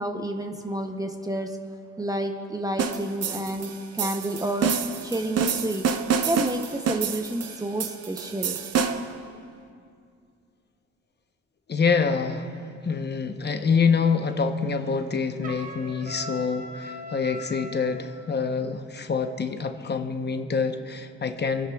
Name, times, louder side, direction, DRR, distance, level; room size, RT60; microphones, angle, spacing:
voice 1, 0.0-1.6 2.0-4.7 5.0-5.9 6.2-8.6, right 1 dB, 10° right, 5 dB, 0.8 m, -30 dB
sound 1, 2.8-9.2, right 6 dB, 55° right, 0.8 m, -28 dB
voice 2, 11.7-21.7, left 5 dB, 35° left, 7 dB, 0.9 m, -26 dB
Trumpet, 15.4-18.0, equal, 25° right, 1.3 m, -39 dB
30.0 x 11.0 x 2.3 m, 2.3 s
cardioid pair, 90°, 30 cm